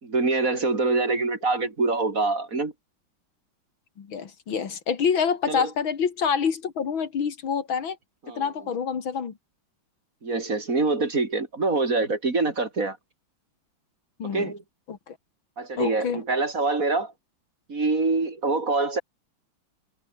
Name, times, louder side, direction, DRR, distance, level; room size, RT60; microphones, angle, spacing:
voice 1, 0.0-2.7 5.5-5.7 8.3-8.4 10.2-13.0 14.3-14.6 15.6-17.1 17.7-19.0, right 3 dB, 40° right, 3.3 m, -25 dB
voice 2, 4.0-8.0 8.4-9.3 14.2-14.5 14.9-15.2 15.8-16.2, left 6 dB, 70° left, 2.8 m, -27 dB
omnidirectional pair, 2.2 m